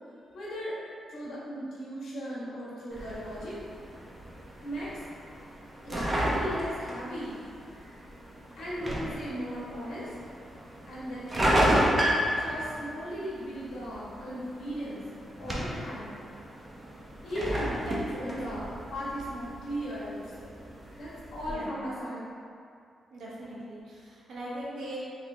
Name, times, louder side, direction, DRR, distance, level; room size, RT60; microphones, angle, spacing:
voice 1, 0.3-0.7 1.1-3.6 4.6-5.0 5.8-7.4 8.6-10.1 10.9-11.8 12.4-15.0 15.4-16.2 17.2-17.8 18.2-20.6 21.0-22.3, equal, 70° left, -8 dB, 1.5 m, -37 dB
sound 1, 2.9-21.5, equal, 25° right, 0.8 m, -33 dB
voice 2, 17.9-18.7 21.5-21.8 23.1-25.0, right 1 dB, 75° right, -6 dB, 1.1 m, -40 dB
4.1 x 3.6 x 3.3 m, 2.4 s
cardioid pair, 95°, 0 cm